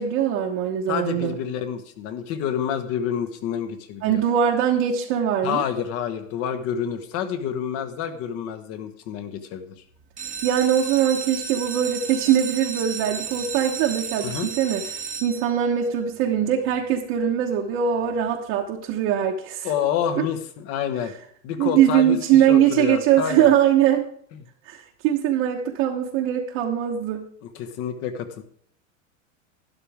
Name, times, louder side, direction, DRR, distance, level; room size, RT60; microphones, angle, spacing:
voice 1, 0.0-1.3 4.0-5.6 10.4-14.8 15.2-19.7 20.2-20.3 21.6-24.1 24.7-27.2, right 10 dB, 40° right, -1 dB, 1.2 m, -21 dB
voice 2, 0.9-4.2 5.4-9.6 14.2-14.5 19.6-21.1 21.4-23.5 27.5-28.4, left 8 dB, 35° left, 9 dB, 1.2 m, -28 dB
sound 1, 10.0-15.8 16.4-16.9 17.3-17.4 17.6-17.7 18.1-18.3, right 6 dB, 20° right, 1.0 m, -33 dB
12.5 x 11.0 x 3.5 m, 0.65 s
supercardioid pair, 150°, 40 cm